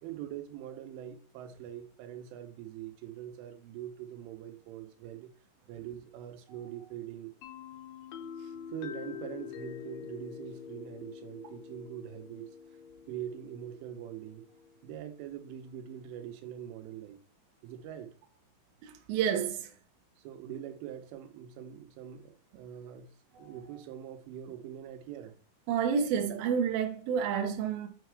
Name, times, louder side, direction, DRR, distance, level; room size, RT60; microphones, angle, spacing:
voice 1, 0.0-5.3 5.7-7.3 8.4-12.5 13.1-14.4 14.8-17.2 17.6-18.1 20.2-23.1 23.4-25.3, right 10 dB, 85° right, 3.4 m, -43 dB
sound 1, 7.4-15.1, left 8 dB, 85° left, 2.0 m, -46 dB
voice 2, 18.8-19.7 23.3-23.8 25.7-27.9, right 7 dB, 70° right, 2.3 m, -30 dB
8.7 x 4.5 x 4.7 m
omnidirectional pair, 5.6 m